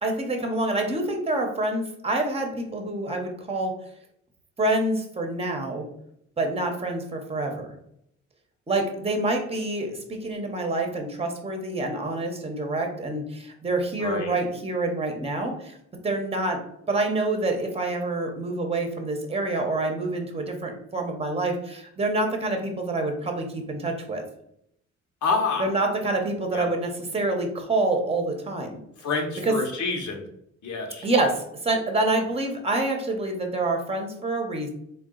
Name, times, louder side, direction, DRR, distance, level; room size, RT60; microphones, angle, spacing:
voice 1, 0.0-3.7 4.6-5.9 6.4-7.8 8.7-15.8 16.0-16.6 16.9-24.2 25.6-28.8 29.4-29.5 31.0-34.7, right 2 dB, 20° right, 4 dB, 0.9 m, -27 dB
voice 2, 14.0-14.4 25.2-25.7 26.5-26.7 29.0-30.3 30.6-31.1, left 4 dB, 70° left, 2 dB, 1.0 m, -27 dB
3.7 x 2.4 x 3.7 m, 0.73 s
cardioid pair, 90°, 30 cm